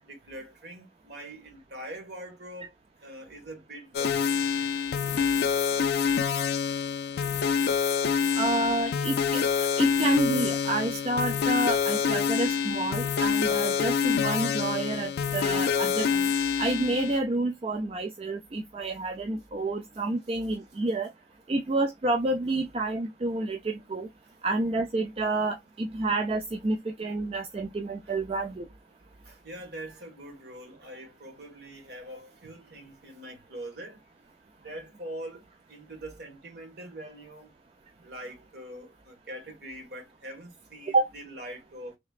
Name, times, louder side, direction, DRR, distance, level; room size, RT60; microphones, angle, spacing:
voice 1, 0.0-2.7 3.0-4.8 28.0-28.1 29.2-34.0 34.6-35.4 35.7-37.5 38.0-42.0, right 1 dB, 55° right, 1.4 m, -43 dB
sound 1, 3.9-17.2, left 7 dB, 55° left, 0.4 m, -26 dB
voice 2, 8.3-9.4 9.8-16.3 16.6-21.1 21.5-24.1 24.4-28.7 40.9-41.1, right 2 dB, 30° right, 0.4 m, -29 dB
3.2 x 2.9 x 2.3 m
head